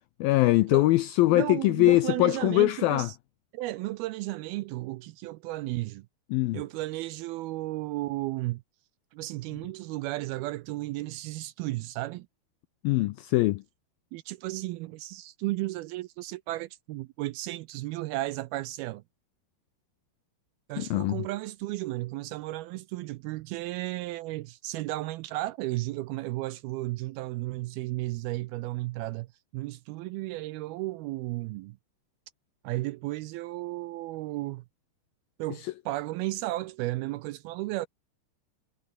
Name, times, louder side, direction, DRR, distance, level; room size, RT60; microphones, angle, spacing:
voice 1, 0.2-3.1 6.3-6.6 12.8-13.6 20.8-21.3 35.6-35.7, left 18 dB, 85° left, 2.1 m, -23 dB
voice 2, 1.3-3.2 3.5-6.1 6.5-8.6 9.1-12.3 14.1-19.0 20.7-31.8 32.6-34.6 35.4-37.9, right 18 dB, 80° right, 2.3 m, -34 dB
omnidirectional pair, 4.9 m